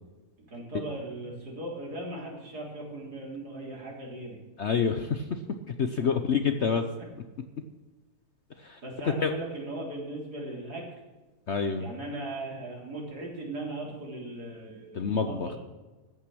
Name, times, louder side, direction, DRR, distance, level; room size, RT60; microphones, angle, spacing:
voice 1, 0.4-4.4 6.0-6.1 8.8-10.9 11.8-15.6, right 1 dB, 65° right, -2 dB, 4.3 m, -38 dB
voice 2, 4.6-5.4 5.8-6.8 8.6-8.8 9.2-9.3 11.5-11.9 14.9-15.5, left 6 dB, 50° left, 8 dB, 0.9 m, -27 dB
14.5 x 9.1 x 6.2 m, 1.2 s
omnidirectional pair, 1.8 m